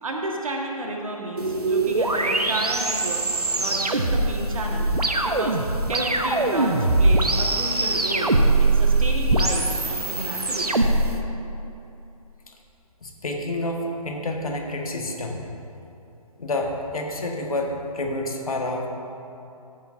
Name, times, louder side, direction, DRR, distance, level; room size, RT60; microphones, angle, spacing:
voice 1, 0.0-3.3 3.6-4.9 5.2-5.6 5.9-8.3 8.6-10.8, right 2 dB, 60° right, 0 dB, 1.7 m, -31 dB
sound 1, 1.4-11.1, right 2 dB, 90° right, 0.9 m, -22 dB
voice 2, 13.0-15.5 16.4-18.9, left 1 dB, 65° left, 1 dB, 1.6 m, -29 dB
14.5 x 10.0 x 2.7 m, 2.8 s
figure-of-eight pair, 140°, 19 cm